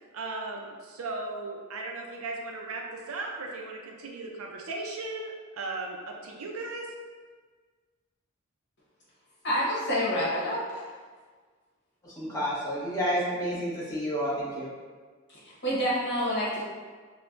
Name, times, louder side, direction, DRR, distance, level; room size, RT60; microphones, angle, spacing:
voice 1, 0.1-6.9, right 3 dB, 80° right, 0 dB, 0.6 m, -37 dB
voice 2, 9.4-10.9 15.3-16.6, equal, 55° left, -7 dB, 1.3 m, -28 dB
voice 3, 12.2-14.7, equal, 15° left, -9 dB, 1.2 m, -30 dB
5.7 x 2.3 x 2.6 m, 1.5 s
head